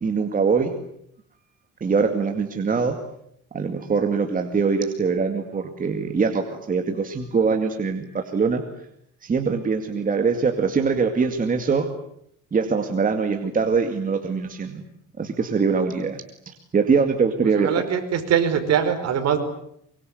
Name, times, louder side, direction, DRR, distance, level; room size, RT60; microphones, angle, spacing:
voice 1, 0.0-0.7 1.8-3.0 3.5-8.6 9.2-11.9 12.5-14.8 15.2-17.7, right 5 dB, 25° right, 5 dB, 2.3 m, -23 dB
voice 2, 17.5-19.4, right 8 dB, 55° right, 7 dB, 5.0 m, -22 dB
24.5 x 23.5 x 9.6 m, 0.72 s
cardioid pair, 135°, 31 cm